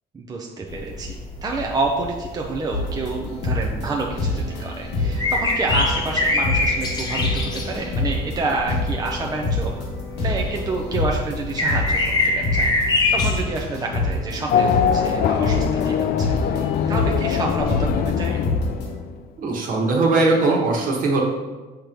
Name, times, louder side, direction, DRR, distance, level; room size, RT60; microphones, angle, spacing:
voice 1, 0.1-1.2 1.4-9.7 10.2-12.7 13.1-16.3 16.9-18.4, right 3 dB, 20° right, 0 dB, 0.6 m, -28 dB
sound 1, 0.7-13.4, left 2 dB, 25° left, 1.1 m, -26 dB
sound 2, 2.7-18.9, left 2 dB, 90° left, 1.5 m, -27 dB
Race car auto racing / Accelerating revving vroom, 14.5-19.2, left 8 dB, 60° left, 0.4 m, -22 dB
voice 2, 19.4-21.2, right 3 dB, 55° right, -1 dB, 1.4 m, -20 dB
6.5 x 3.1 x 5.1 m, 1.3 s
cardioid pair, 110°, 17 cm